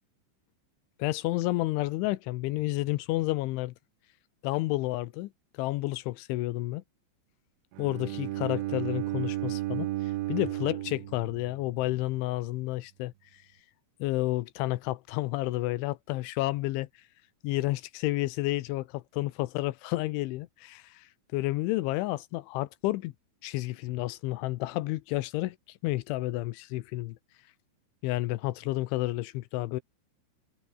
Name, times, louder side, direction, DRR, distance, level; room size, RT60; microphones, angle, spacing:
voice 1, 1.0-3.7 4.4-5.3 5.6-6.8 7.8-13.4 14.0-16.9 17.4-23.1 23.4-27.2 28.0-29.8, left 18 dB, 85° left, 3.2 m, -31 dB
Bowed string instrument, 7.7-11.8, right 16 dB, 80° right, 3.4 m, -33 dB
omnidirectional pair, 5.5 m